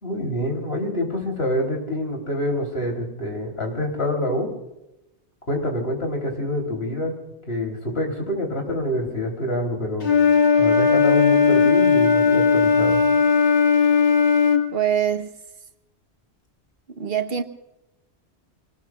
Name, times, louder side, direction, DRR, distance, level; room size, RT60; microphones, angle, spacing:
voice 1, 0.0-4.5 5.5-7.1 7.5-10.1 10.6-13.0, left 1 dB, 65° left, 3.8 m, -26 dB
Wind instrument woodwind instrument, 10.0-14.6, left 5 dB, 80° left, 2.0 m, -17 dB
voice 2, 14.7-15.3 16.9-17.4, right 9 dB, 60° right, 1.4 m, -24 dB
27.5 x 19.5 x 2.4 m
omnidirectional pair, 1.1 m